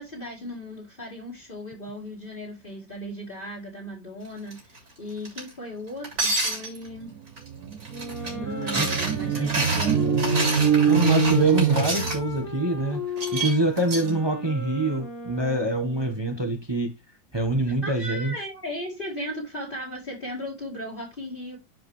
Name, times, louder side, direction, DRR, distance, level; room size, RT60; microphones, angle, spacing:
voice 1, 0.0-7.1 8.4-10.2 14.0-14.2 17.8-21.6, equal, 30° left, 2.3 m, -37 dB
sound 1, 4.5-4.8 5.3-5.5 6.0-6.9 7.4-7.5 7.7-8.3 8.6-12.2 13.2-14.1, right 2 dB, 50° right, 4.2 m, -28 dB
sound 2, 7.1-7.2 7.5-12.5, right 6 dB, 70° right, 1.1 m, -24 dB
Wind instrument woodwind instrument, 7.9-16.3, left 3 dB, 70° left, 3.0 m, -36 dB
voice 2, 9.3-9.7 10.9-13.0 13.3-16.9 17.3-18.3, right 1 dB, 20° right, 1.1 m, -25 dB
10.5 x 4.9 x 3.2 m
omnidirectional pair, 1.7 m